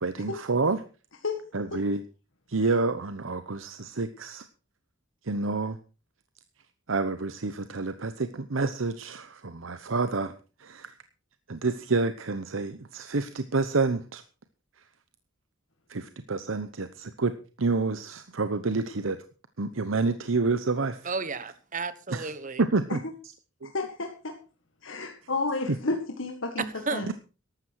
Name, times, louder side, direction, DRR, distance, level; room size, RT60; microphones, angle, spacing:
voice 1, 0.0-0.8 1.5-2.0 2.5-4.4 5.3-5.8 6.9-10.3 10.6-10.9 11.5-14.2 15.9-17.3 17.6-19.2 19.6-21.0 22.1-22.3 22.6-23.0 23.6-23.7 27.1-27.2, right 3 dB, 90° right, 0.9 m, -28 dB
voice 2, 21.0-22.6 26.9-27.1, right 4 dB, 40° right, 1.2 m, -33 dB
voice 3, 23.7-24.3 24.8-27.1, left 3 dB, 80° left, 1.8 m, -31 dB
14.0 x 12.0 x 4.8 m
head